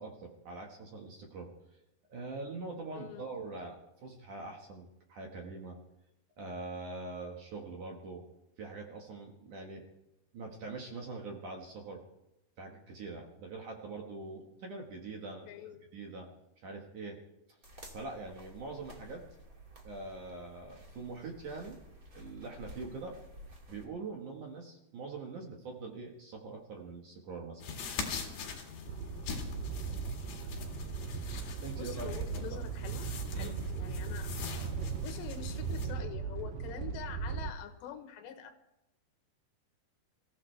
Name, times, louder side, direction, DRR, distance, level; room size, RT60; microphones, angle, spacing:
voice 1, 0.0-1.5 2.1-5.8 6.4-8.2 8.6-9.8 10.3-12.0 12.6-15.5 15.9-16.3 16.6-17.2 17.5-17.6 17.9-19.2 19.8-21.8 22.1-23.2 23.7-27.6 31.6-32.7 33.3-33.6, right 3 dB, 55° right, 1 dB, 2.5 m, -43 dB
voice 2, 2.9-3.4 15.5-15.8 31.8-34.4 35.0-38.5, left 10 dB, 80° left, 7 dB, 3.3 m, -45 dB
sound 1, 17.6-23.9, equal, 30° right, 1.8 m, -53 dB
sound 2, 27.6-35.9, left 5 dB, 60° left, 3.7 m, -42 dB
sound 3, 28.9-37.5, right 6 dB, 90° right, 1.9 m, -38 dB
26.5 x 15.0 x 3.4 m, 0.89 s
omnidirectional pair, 5.1 m